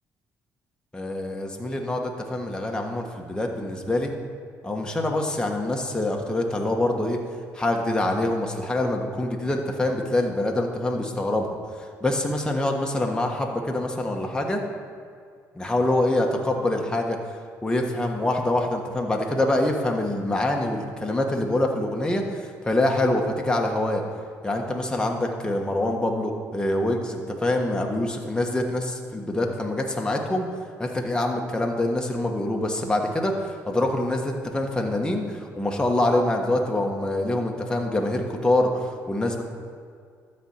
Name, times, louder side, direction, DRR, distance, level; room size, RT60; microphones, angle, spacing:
voice 1, 0.9-4.1 4.6-7.2 7.5-11.5 11.8-14.6 15.5-17.2 17.6-24.0 24.4-30.5 30.8-39.4, left 1 dB, 10° left, 1 dB, 1.4 m, -25 dB
12.5 x 4.4 x 8.1 m, 2.2 s
cardioid pair, 90°, 7 cm